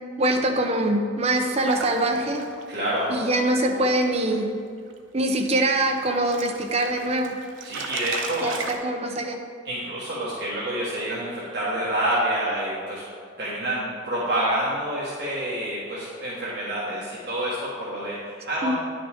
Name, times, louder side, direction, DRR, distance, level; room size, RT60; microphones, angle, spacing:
voice 1, 0.2-2.4 3.1-4.5 5.1-7.4 8.4-9.4 18.6-18.7, right 1 dB, 30° right, 3 dB, 0.7 m, -23 dB
sound 1, 1.7-4.4 4.8-5.0 5.4-8.8, right 4 dB, 85° right, 0.7 m, -37 dB
voice 2, 2.7-3.1 7.6-8.5 9.6-13.0 13.4-18.7, right 1 dB, 60° right, -9 dB, 1.5 m, -28 dB
9.7 x 5.8 x 3.5 m, 2.2 s
head